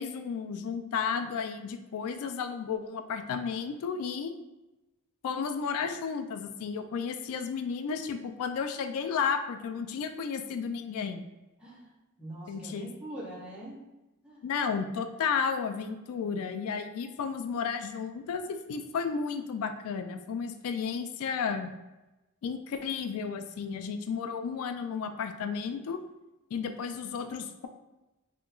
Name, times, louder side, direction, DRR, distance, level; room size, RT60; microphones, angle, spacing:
voice 1, 0.0-4.3 5.2-11.3 12.5-12.9 14.4-21.7 22.4-26.0 26.5-27.7, left 6 dB, 70° left, 9 dB, 0.3 m, -33 dB
voice 2, 11.6-11.9 12.2-13.9 14.2-14.4, right 1 dB, 5° right, -9 dB, 1.1 m, -43 dB
2.8 x 2.2 x 3.7 m, 1.0 s
head